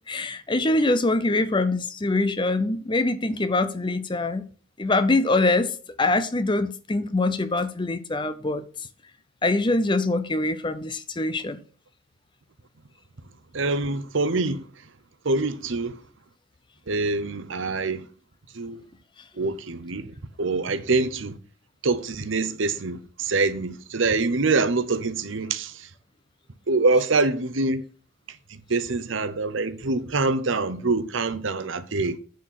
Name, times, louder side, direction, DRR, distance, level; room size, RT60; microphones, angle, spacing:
voice 1, 0.1-4.4 4.8-5.7 6.0-8.7 9.4-11.6, left 2 dB, 25° left, 0.6 m, -24 dB
voice 2, 13.5-14.6 15.2-16.0 16.9-18.1 18.5-18.8 19.4-21.4 21.8-25.9 26.7-27.8 28.3-32.2, right 3 dB, 65° right, 0.8 m, -25 dB
9.3 x 4.4 x 6.3 m
head